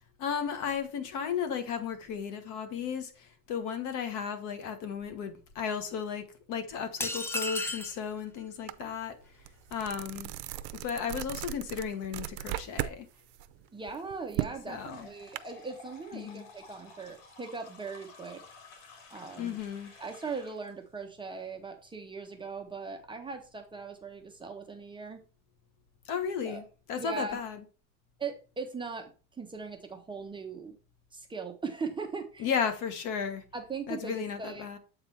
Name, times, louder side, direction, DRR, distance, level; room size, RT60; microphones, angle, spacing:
voice 1, 0.2-9.2 9.7-10.3 10.8-13.1 14.7-15.1 16.1-16.5 19.4-19.9 26.0-27.6 32.4-33.4 33.9-34.8, left 7 dB, 55° left, 1.3 m, -34 dB
sound 1, 7.0-8.0, left 2 dB, 5° left, 0.4 m, -33 dB
sound 2, 8.7-8.8 9.2-13.0 13.3-15.4, right 15 dB, 75° right, 0.6 m, -37 dB
voice 2, 13.7-18.4 19.1-19.6 20.0-25.2 26.4-26.6 27.0-27.4 28.2-29.1 29.4-30.8 31.1-32.5 33.5-34.6, right 4 dB, 15° right, 0.8 m, -39 dB
sound 3, 14.8-20.7, left 4 dB, 85° left, 2.8 m, -53 dB
7.8 x 3.9 x 4.5 m
cardioid pair, 145°, 36 cm